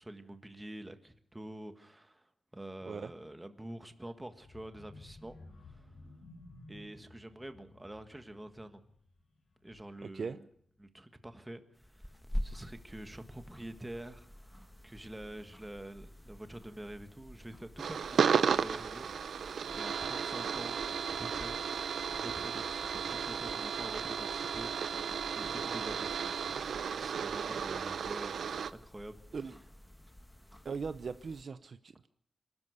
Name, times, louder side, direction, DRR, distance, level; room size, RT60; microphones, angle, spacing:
voice 1, 0.0-5.9 6.7-8.8 9.6-10.5 10.8-14.5 14.8-19.4 19.7-20.8 21.1-21.6 22.1-24.7 25.0-26.3 26.9-29.2, right 1 dB, 10° right, 8 dB, 1.6 m, -47 dB
sound 1, 4.4-10.1 10.5-10.8 11.1-11.2, left 2 dB, 80° left, 6.3 m, -55 dB
voice 2, 10.0-10.4 29.3-29.6 30.6-32.1, right 5 dB, 55° right, 12 dB, 0.7 m, -39 dB
sound 2, 11.8-31.4, equal, 5° left, 1.3 m, -48 dB
sound 3, 17.8-28.7, right 7 dB, 85° right, 0.8 m, -34 dB
26.5 x 12.5 x 8.1 m, 0.66 s
wide cardioid pair, 150°, 0 cm